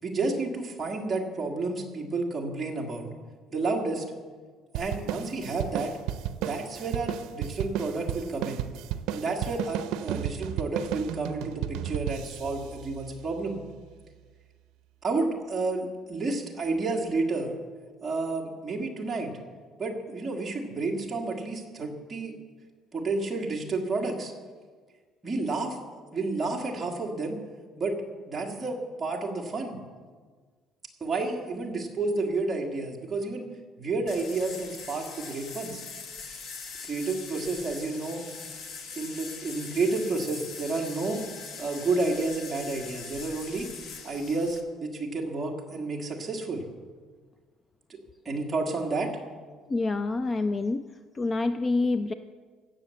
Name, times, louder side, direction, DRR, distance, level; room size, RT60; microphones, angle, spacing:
voice 1, 0.0-3.1 3.5-4.0 4.7-5.9 6.4-8.6 9.1-13.6 15.0-17.5 18.0-19.4 19.8-22.3 22.9-24.3 25.2-25.8 26.1-27.4 27.8-28.0 28.3-29.8 31.0-33.5 33.8-35.8 36.8-38.2 38.9-41.2 41.6-43.7 44.0-46.6 47.9-48.0 48.2-49.1, right 3 dB, 15° right, -1 dB, 1.7 m, -30 dB
sound 1, 4.7-13.6, right 10 dB, 85° right, 0.5 m, -34 dB
sound 2, 34.1-44.6, left 5 dB, 45° left, 1.2 m, -42 dB
voice 2, 49.7-50.8 51.1-52.1, left 3 dB, 20° left, 10 dB, 0.3 m, -27 dB
16.5 x 6.7 x 7.6 m, 1.5 s
cardioid pair, 180°, 0 cm